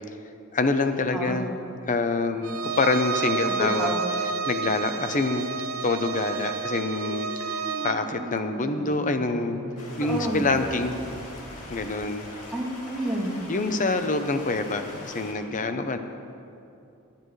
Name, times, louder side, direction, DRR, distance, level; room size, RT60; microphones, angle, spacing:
voice 1, 0.5-1.5 1.9-3.9 4.2-5.4 5.8-9.6 10.0-11.0 11.7-12.3 13.5-16.0, left 3 dB, 35° left, 8 dB, 0.7 m, -26 dB
Bowed string instrument, 2.4-8.0, right 6 dB, 75° right, 0.8 m, -30 dB
voice 2, 3.4-4.1 10.0-10.5 12.5-13.4, right 1 dB, ahead, -8 dB, 2.6 m, -29 dB
sound 1, 5.1-12.1, right 2 dB, 30° right, 0.6 m, -42 dB
Stream, 9.8-15.3, left 2 dB, 90° left, 2.4 m, -42 dB
20.5 x 10.5 x 3.2 m, 2.6 s
head